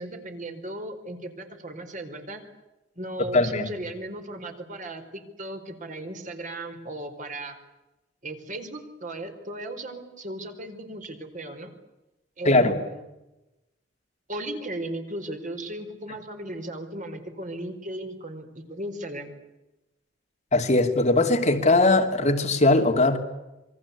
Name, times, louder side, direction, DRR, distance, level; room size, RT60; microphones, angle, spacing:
voice 1, 0.0-2.4 3.0-7.6 8.2-11.7 12.4-13.0 14.3-19.3, right 1 dB, 45° right, 7 dB, 4.7 m, -36 dB
voice 2, 3.3-3.7 12.4-12.7 20.5-23.2, left 2 dB, 40° left, 5 dB, 2.8 m, -20 dB
27.5 x 23.5 x 8.5 m, 1.0 s
head